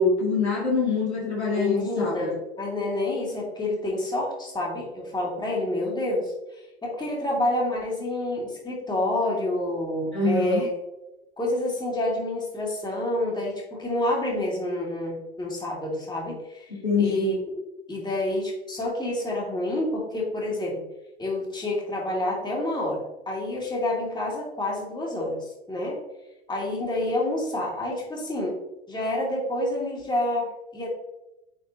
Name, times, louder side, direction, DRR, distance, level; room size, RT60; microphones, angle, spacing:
voice 1, 0.0-2.3 10.1-10.6 16.8-17.3, left 3 dB, 90° left, -3 dB, 2.1 m, -24 dB
voice 2, 1.5-6.3 6.8-10.7 11.4-16.7 17.0-17.6 17.9-20.8 21.2-26.0 26.5-28.6 28.9-30.9, left 1 dB, 15° left, -3 dB, 2.4 m, -28 dB
9.5 x 4.3 x 2.7 m, 0.95 s
hypercardioid pair, 85°, 32 cm